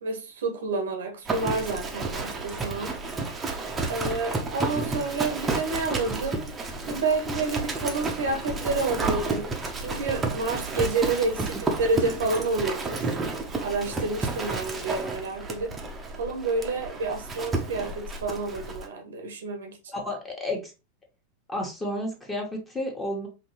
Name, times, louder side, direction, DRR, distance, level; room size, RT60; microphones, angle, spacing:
voice 1, 0.0-3.0 3.9-6.5 6.9-9.5 9.8-13.2 13.6-15.8 16.1-19.8, right 3 dB, 60° right, 0.9 m, -29 dB
Livestock farm animals working animals, 1.3-18.9, right 3 dB, 15° right, 0.9 m, -31 dB
voice 2, 19.9-20.7 21.5-23.3, left 1 dB, 10° left, 1.5 m, -31 dB
5.2 x 2.8 x 3.0 m
figure-of-eight pair, 90°, 0 cm